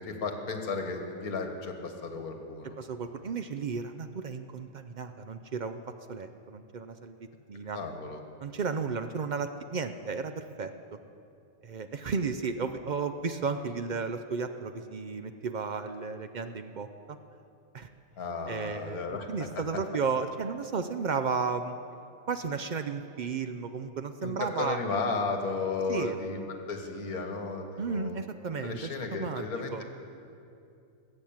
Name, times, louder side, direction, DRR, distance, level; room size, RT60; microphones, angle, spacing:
voice 1, 0.0-2.7 7.7-8.2 18.2-19.3 24.2-28.2 28.6-29.8, left 4 dB, 80° left, 4 dB, 1.9 m, -34 dB
voice 2, 2.6-5.8 6.1-7.2 7.5-7.8 8.4-11.0 11.6-17.2 17.7-17.9 18.5-21.7 22.3-24.8 25.9-26.2 27.8-29.5 29.7-29.8, right 5 dB, 75° right, 8 dB, 0.4 m, -33 dB
20.0 x 7.8 x 8.8 m, 2.6 s
omnidirectional pair, 1.6 m